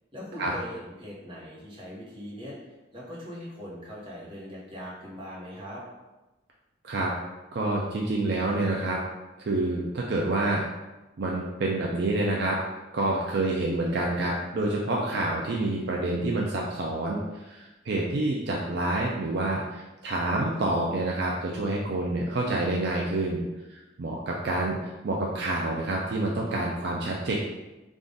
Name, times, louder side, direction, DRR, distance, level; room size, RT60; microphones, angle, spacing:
voice 1, 0.1-2.6 2.9-5.8, equal, 25° right, -6 dB, 1.1 m, -40 dB
voice 2, 7.5-9.0 9.4-10.6 11.2-12.6 12.9-23.4 23.7-24.8 25.0-27.3, right 2 dB, 60° right, -2 dB, 0.4 m, -28 dB
3.6 x 2.4 x 3.9 m, 1.1 s
head